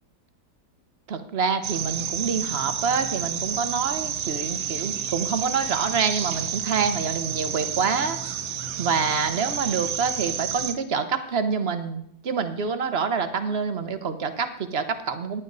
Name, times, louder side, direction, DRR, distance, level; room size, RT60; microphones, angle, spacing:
voice 1, 1.1-8.2 8.8-15.4, right 5 dB, 45° right, 9 dB, 1.1 m, -26 dB
sound 1, 1.6-10.7, right 8 dB, 75° right, 1.4 m, -30 dB
15.0 x 10.5 x 4.0 m, 0.72 s
omnidirectional pair, 1.8 m